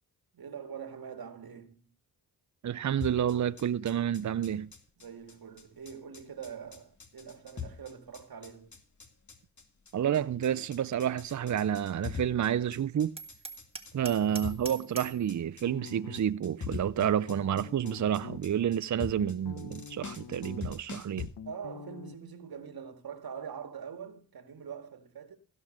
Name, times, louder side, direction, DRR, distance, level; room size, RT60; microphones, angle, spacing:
voice 1, 0.3-1.9 5.0-8.8 13.9-14.1 21.5-25.4, right 7 dB, 65° right, 2.0 m, -44 dB
voice 2, 2.6-4.7 9.9-13.1 13.9-21.3, right 9 dB, 50° right, 0.6 m, -29 dB
sound 1, 3.0-21.3, left 6 dB, 45° left, 2.5 m, -43 dB
Hammer, 13.2-15.2, right 3 dB, 15° right, 1.9 m, -43 dB
sound 2, 15.6-16.5 17.0-18.4 18.9-20.8 21.1-22.2, left 8 dB, 65° left, 1.1 m, -46 dB
16.5 x 5.6 x 6.5 m
cardioid pair, 50°, 39 cm